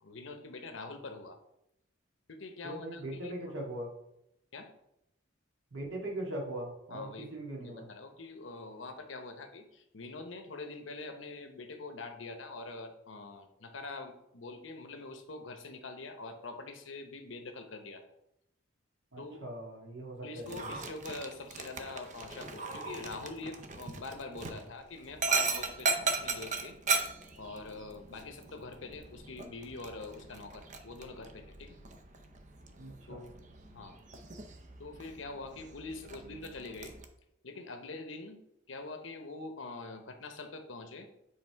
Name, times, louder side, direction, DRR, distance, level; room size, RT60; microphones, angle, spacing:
voice 1, 0.0-1.4 2.3-3.5 4.5-4.7 6.9-7.3 7.6-18.0 19.2-19.4 20.2-26.8 27.4-31.8 33.1-33.3 33.7-34.0 34.8-36.9 37.4-38.4 38.7-41.1, left 3 dB, 75° left, 6 dB, 0.9 m, -44 dB
voice 2, 2.6-3.9 5.7-7.9 19.1-20.7 32.8-33.3, right 1 dB, 70° right, -2 dB, 1.9 m, -40 dB
Dog, 20.4-37.0, right 4 dB, 40° right, 0.6 m, -38 dB
7.5 x 3.4 x 4.6 m, 0.82 s
head